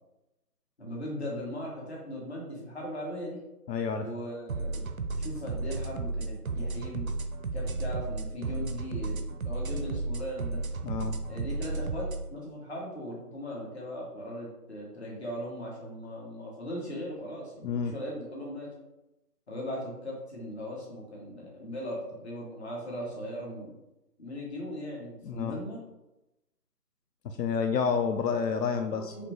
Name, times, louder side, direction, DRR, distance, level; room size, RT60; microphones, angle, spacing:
voice 1, 0.8-3.4 4.0-7.1 7.5-10.6 11.3-18.7 19.5-23.8 24.2-25.8 28.9-29.3, equal, 45° left, -3 dB, 1.6 m, -38 dB
voice 2, 3.7-4.1 10.8-11.2 17.6-17.9 25.3-25.6 27.2-29.1, left 6 dB, 90° left, 6 dB, 0.6 m, -29 dB
sound 1, 4.5-12.2, right 3 dB, 60° right, 0.6 m, -33 dB
5.0 x 3.2 x 3.0 m, 0.95 s
figure-of-eight pair, 165°, 47 cm